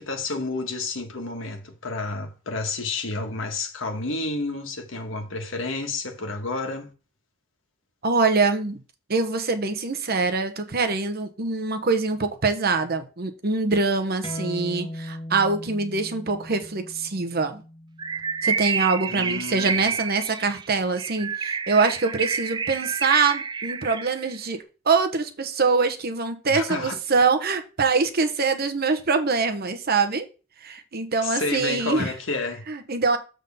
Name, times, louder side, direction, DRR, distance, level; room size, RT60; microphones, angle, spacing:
voice 1, 0.0-6.9 19.1-19.8 26.5-27.0 31.2-32.6, left 3 dB, 75° left, 1.5 m, -30 dB
voice 2, 8.0-8.8 9.1-17.6 18.4-24.6 24.9-30.2 30.6-32.1 32.7-33.2, right 4 dB, 50° right, 0.9 m, -24 dB
sound 1, 14.2-19.4, left 1 dB, 25° left, 1.0 m, -38 dB
Bird, 18.0-24.3, right 5 dB, 20° right, 0.4 m, -29 dB
7.2 x 3.8 x 5.4 m
head